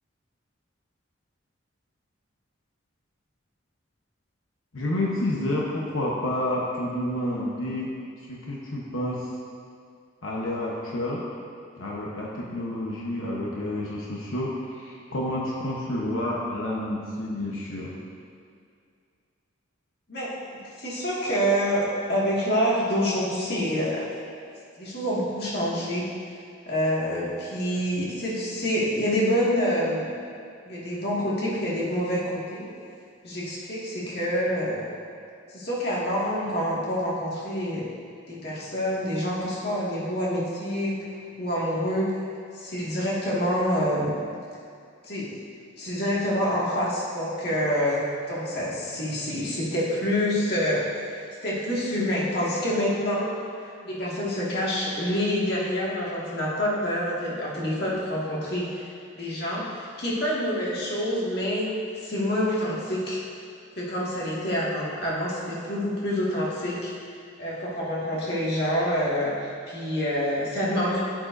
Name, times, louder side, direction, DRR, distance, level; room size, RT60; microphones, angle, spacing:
voice 1, 4.7-7.9 8.3-9.3 10.2-11.2 11.8-17.9, left 1 dB, 80° left, -4 dB, 1.0 m, -29 dB
voice 2, 20.1-24.1 24.7-26.1 26.7-30.1 30.6-32.7 33.2-34.9 35.5-37.9 38.3-41.0 41.4-42.2 42.5-44.2 45.0-45.4 45.8-53.3 53.6-63.2 63.8-66.9 67.4-71.0, equal, 50° left, -7 dB, 2.0 m, -27 dB
11.0 x 7.7 x 2.6 m, 2.3 s
head